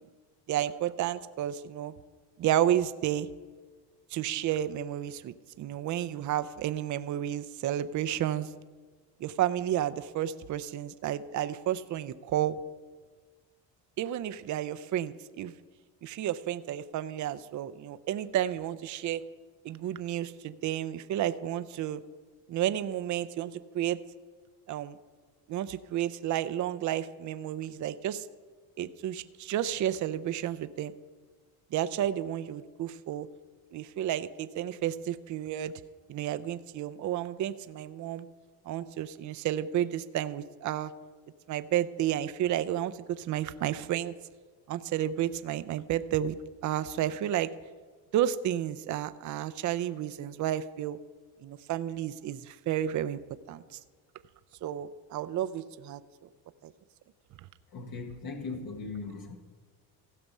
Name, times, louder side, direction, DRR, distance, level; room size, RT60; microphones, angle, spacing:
voice 1, 0.5-1.9 2.4-3.3 4.1-8.5 9.2-12.6 14.0-15.5 16.0-19.2 19.6-22.0 22.5-24.0 24.7-25.0 25.5-28.3 28.8-30.9 31.7-33.3 33.7-35.7 36.1-38.3 38.7-40.9 41.5-44.1 44.7-46.4 46.6-47.5 48.1-51.0 51.4-53.2 53.5-53.8 54.6-56.0 56.6-56.7, right 11 dB, 45° right, 12 dB, 0.6 m, -31 dB
voice 2, 57.7-59.4, left 4 dB, 55° left, 2 dB, 1.4 m, -38 dB
16.0 x 5.9 x 5.4 m, 1.4 s
supercardioid pair, 90°, 42 cm